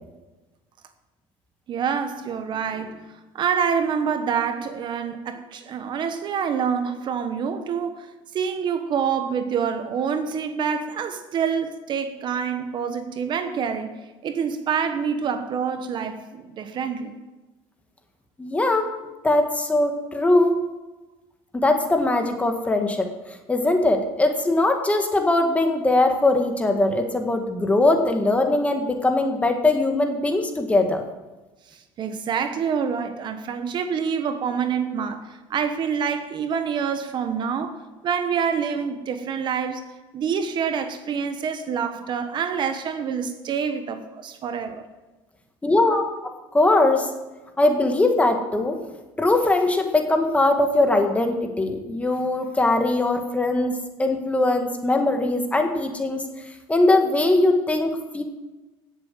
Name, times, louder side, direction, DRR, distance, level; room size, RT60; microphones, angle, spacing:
voice 1, 1.7-13.9 14.2-17.1 31.7-37.8 38.0-39.9 40.1-44.8, right 7 dB, 45° right, 1.2 m, -27 dB
voice 2, 18.4-18.9 19.2-20.5 21.5-31.0 45.6-47.1 47.6-48.8 49.2-56.2 56.7-58.2, left 2 dB, 10° left, 1.8 m, -21 dB
16.5 x 7.8 x 7.5 m
cardioid pair, 125°, 11 cm